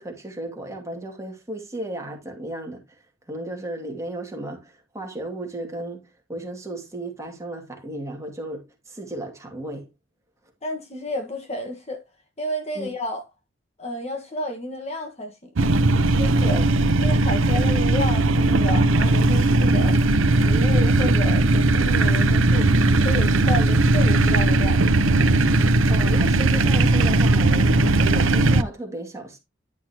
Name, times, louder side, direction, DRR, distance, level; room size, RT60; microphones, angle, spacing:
voice 1, 0.0-2.8 3.3-6.0 6.3-9.9 12.7-12.9 16.4-16.7 25.9-29.4, right 1 dB, 15° right, 2.4 m, -34 dB
voice 2, 10.6-12.0 12.4-13.2 13.8-15.5 16.2-16.6 17.0-20.0 20.3-22.7 23.0-24.8, left 1 dB, 35° left, 1.6 m, -31 dB
sound 1, 15.6-28.6, right 2 dB, 85° right, 0.7 m, -18 dB
10.5 x 5.9 x 3.0 m
head